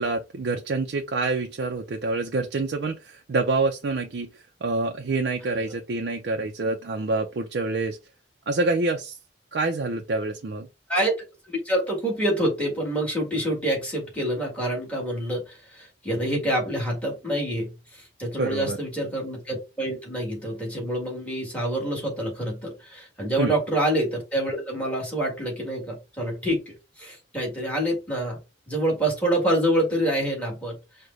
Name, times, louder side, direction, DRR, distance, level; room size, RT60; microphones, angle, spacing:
voice 1, 0.0-8.0 8.5-9.2 9.5-10.7 18.4-18.8 23.4-23.5, right 3 dB, 60° right, 0.4 m, -27 dB
voice 2, 11.5-26.6 27.0-28.4 28.7-30.8, right 1 dB, 5° left, 1.8 m, -27 dB
4.8 x 2.1 x 3.9 m
head